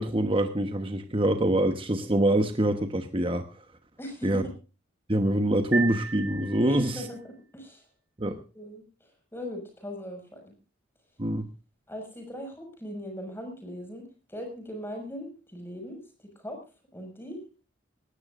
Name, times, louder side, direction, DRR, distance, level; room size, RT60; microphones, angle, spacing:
voice 1, 0.0-3.4 4.2-4.4 5.1-7.0 8.2-8.4 11.2-11.5, right 1 dB, 25° right, 7 dB, 1.1 m, -25 dB
voice 2, 4.0-4.5 6.6-7.8 8.5-10.5 11.9-16.6 16.9-17.4, equal, 10° left, 3 dB, 6.0 m, -40 dB
sound 1, 5.7-7.2, right 5 dB, 85° right, 5.0 m, -34 dB
19.0 x 17.5 x 2.5 m, 0.33 s
head